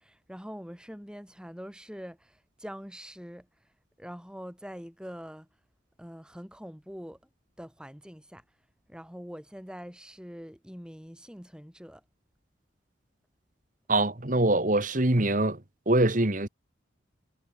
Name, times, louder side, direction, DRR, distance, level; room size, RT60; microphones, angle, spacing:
voice 1, 0.0-3.5 4.0-5.5 6.0-7.2 7.6-8.4 8.9-12.0, equal, 5° right, 5.9 m, -44 dB
voice 2, 13.9-15.6 15.9-16.5, right 2 dB, 40° right, 1.7 m, -24 dB
head